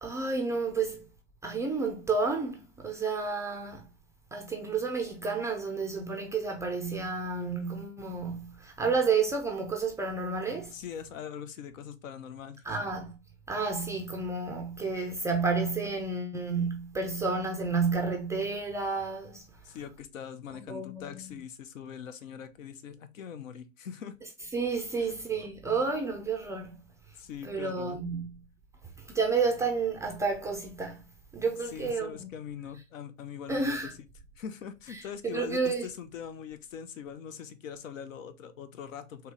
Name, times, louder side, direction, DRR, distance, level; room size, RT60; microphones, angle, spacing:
voice 1, 0.0-1.0 1.4-3.9 4.3-10.7 12.7-13.2 13.5-19.4 20.7-21.4 24.5-26.8 27.4-28.4 29.1-31.0 31.3-32.3 33.5-33.9 34.9-35.9, right 4 dB, 10° right, 0.3 m, -31 dB
voice 2, 10.7-12.6 19.6-24.1 25.0-25.1 27.1-28.0 31.7-34.0 34.4-39.3, left 8 dB, 80° left, 0.9 m, -42 dB
4.5 x 2.8 x 3.2 m
hypercardioid pair, 120°, 39 cm